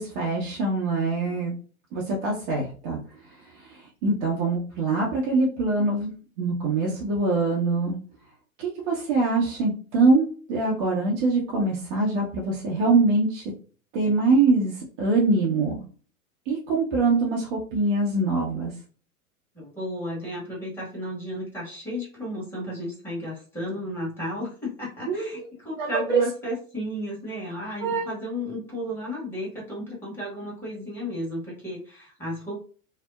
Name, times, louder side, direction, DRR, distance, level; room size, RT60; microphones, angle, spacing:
voice 1, 0.0-1.5 1.9-3.0 3.6-3.8 4.0-6.1 6.4-8.0 8.6-13.4 13.9-15.8 16.5-18.7 25.1-25.4 25.8-26.2 27.8-28.1, right 3 dB, 35° right, -3 dB, 0.7 m, -24 dB
voice 2, 19.5-32.6, equal, 5° left, -5 dB, 1.3 m, -33 dB
2.7 x 2.0 x 2.3 m, 0.39 s
figure-of-eight pair, 95°, 43 cm